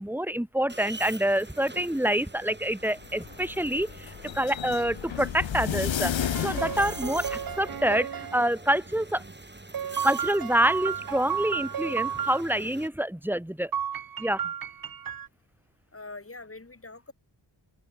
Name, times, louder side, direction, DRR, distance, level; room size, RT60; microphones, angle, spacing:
voice 1, 0.0-6.1 6.4-9.2 10.0-13.7 14.2-14.4, right 1 dB, 5° right, 2.4 m, -27 dB
sound 1, 0.7-12.9, right 2 dB, 25° right, 7.6 m, -45 dB
sound 2, 2.8-7.9, left 9 dB, 85° left, 1.4 m, -33 dB
sound 3, 6.2-8.4 9.7-12.4 13.7-15.3, right 8 dB, 50° right, 0.8 m, -33 dB
voice 2, 15.9-17.1, left 3 dB, 30° left, 5.2 m, -43 dB
open air
cardioid pair, 60°, 44 cm